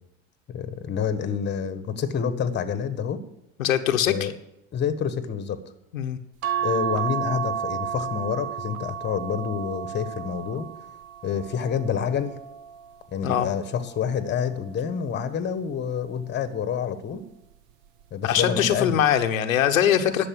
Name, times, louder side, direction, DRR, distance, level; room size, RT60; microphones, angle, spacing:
voice 1, 0.5-3.2 4.0-4.3 4.7-5.6 6.6-10.7 11.2-12.4 13.1-17.2 18.1-19.0 20.0-20.3, left 7 dB, 25° left, 11 dB, 1.2 m, -28 dB
voice 2, 3.6-4.3 5.9-6.2 13.2-13.5 18.2-20.3, left 9 dB, 85° left, 6 dB, 1.0 m, -22 dB
sound 1, 6.4-13.0 13.7-15.1 16.3-16.7 17.1-17.2, right 9 dB, 55° right, 0.9 m, -33 dB
11.0 x 7.0 x 7.6 m, 0.83 s
hypercardioid pair, 95°, 39 cm